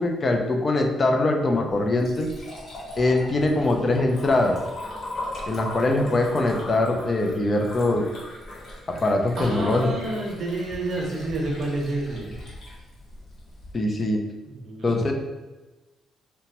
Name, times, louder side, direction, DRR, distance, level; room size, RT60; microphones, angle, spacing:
voice 1, 0.0-2.3 3.0-4.6 5.5-8.1 8.9-9.9 13.7-14.2 14.8-15.1, left 2 dB, 35° left, 3 dB, 0.4 m, -22 dB
Liquid, 1.7-13.7, left 1 dB, 55° left, 1.1 m, -39 dB
voice 2, 9.4-12.3 14.5-14.9, right 2 dB, 60° right, -1 dB, 0.7 m, -29 dB
2.8 x 2.2 x 2.9 m, 1.1 s
cardioid pair, 90°, 0 cm